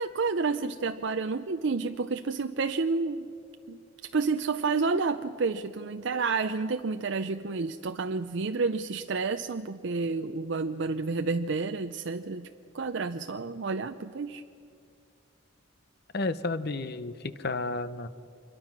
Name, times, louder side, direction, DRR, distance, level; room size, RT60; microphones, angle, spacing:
voice 1, 0.0-3.3 3.7-12.5 12.7-14.4, right 4 dB, 60° right, 8 dB, 0.5 m, -30 dB
voice 2, 16.1-18.1, left 3 dB, 50° left, 13 dB, 0.8 m, -32 dB
26.5 x 22.5 x 6.1 m, 2.4 s
head